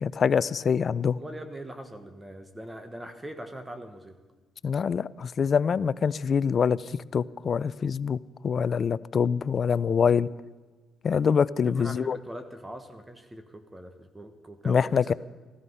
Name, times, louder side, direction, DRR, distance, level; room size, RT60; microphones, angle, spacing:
voice 1, 0.0-1.2 4.6-10.3 11.0-12.2 14.6-15.1, left 6 dB, 50° left, 19 dB, 0.4 m, -25 dB
voice 2, 1.2-4.2 11.6-15.1, right 1 dB, 15° right, 8 dB, 1.2 m, -42 dB
15.5 x 13.0 x 5.5 m, 1.3 s
cardioid pair, 90°, 0 cm